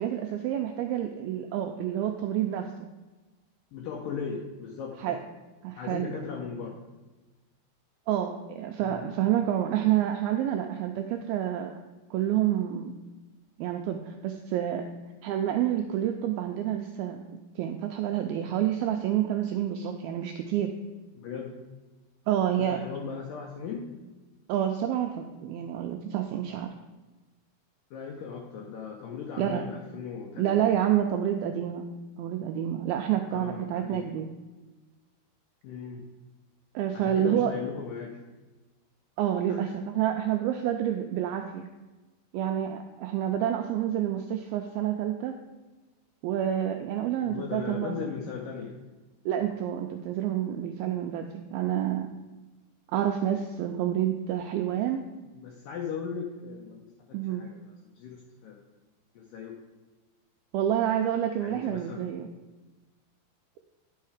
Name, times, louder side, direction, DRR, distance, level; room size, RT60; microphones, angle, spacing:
voice 1, 0.0-2.7 5.0-5.2 5.6-6.1 8.1-11.8 12.1-12.9 13.6-14.9 15.2-17.2 17.6-20.7 22.3-22.8 24.5-26.7 29.4-29.7 30.4-31.9 32.2-34.3 36.8-37.5 39.2-41.7 42.3-45.3 46.2-48.1 49.3-52.1 52.9-55.0 57.1-57.4 60.5-62.3, right 11 dB, 85° right, 5 dB, 2.2 m, -28 dB
voice 2, 3.7-5.2 5.8-6.8 8.8-9.1 21.1-21.5 22.6-23.9 27.9-30.6 33.3-34.1 35.6-36.0 36.9-38.2 39.5-39.6 47.2-48.8 55.3-56.8 57.1-57.6 58.0-58.6 59.2-59.6 61.4-62.0, left 6 dB, 75° left, 0 dB, 2.1 m, -38 dB
10.5 x 5.6 x 4.9 m, 1.2 s
omnidirectional pair, 4.8 m